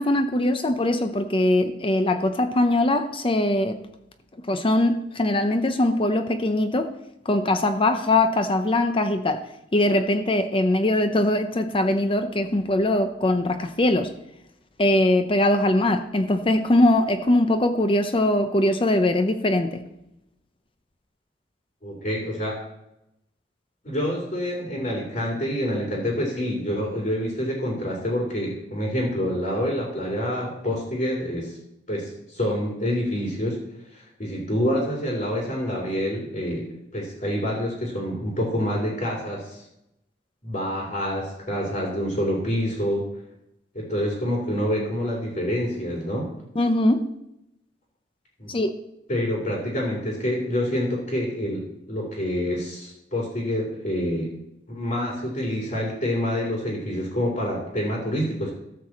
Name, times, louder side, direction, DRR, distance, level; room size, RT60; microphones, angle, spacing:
voice 1, 0.0-3.8 4.5-6.9 7.3-9.4 9.7-14.1 14.8-19.8 46.6-47.0 48.5-48.7, left 1 dB, 30° left, 8 dB, 0.7 m, -21 dB
voice 2, 21.8-22.6 23.8-31.6 31.9-33.6 33.9-39.6 40.4-43.1 43.7-46.3 48.4-48.5 49.1-54.3 54.7-58.5, equal, 45° left, -3 dB, 3.0 m, -27 dB
13.5 x 4.8 x 7.2 m, 0.84 s
head